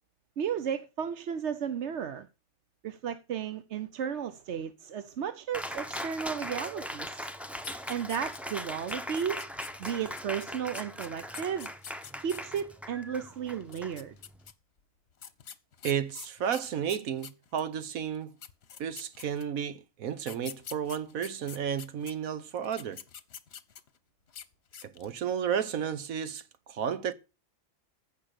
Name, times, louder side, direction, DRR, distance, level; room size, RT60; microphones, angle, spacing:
voice 1, 0.4-2.3 2.8-7.3 7.9-9.4 9.8-11.7 12.2-14.1, right 8 dB, 60° right, 1.0 m, -34 dB
Cheering, 5.5-14.5, equal, ahead, 0.7 m, -40 dB
sound 1, 7.6-8.6 8.9-12.6 13.6-14.5 15.2-17.7 18.1-18.2 18.4-19.6 20.2-22.1 22.6-24.0 24.3-24.5 24.7-25.2, left 8 dB, 55° left, 1.1 m, -46 dB
voice 2, 15.8-18.4 18.8-23.0 24.8-26.4 26.7-27.1, right 8 dB, 90° right, 1.4 m, -32 dB
15.0 x 5.8 x 6.7 m
omnidirectional pair, 1.4 m